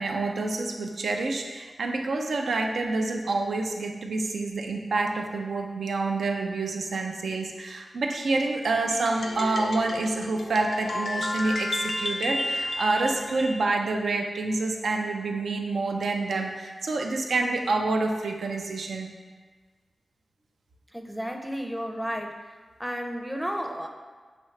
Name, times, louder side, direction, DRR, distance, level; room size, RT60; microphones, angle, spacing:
voice 1, 0.0-19.1, right 3 dB, 90° right, 3 dB, 0.4 m, -28 dB
sound 1, 8.9-13.6, left 2 dB, 75° left, 0.4 m, -32 dB
voice 2, 20.9-22.5 22.8-23.9, equal, 5° right, 3 dB, 0.5 m, -32 dB
5.9 x 2.7 x 3.2 m, 1.5 s
cardioid pair, 60°, 0 cm